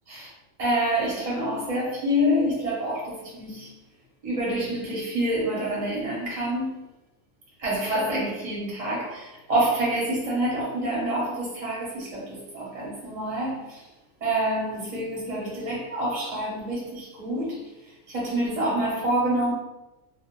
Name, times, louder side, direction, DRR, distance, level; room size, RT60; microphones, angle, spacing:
voice 1, 0.6-3.7 4.2-6.7 7.6-13.9 14.2-19.5, right 1 dB, 40° right, -6 dB, 0.7 m, -27 dB
2.3 x 2.2 x 2.9 m, 1.0 s
omnidirectional pair, 1.4 m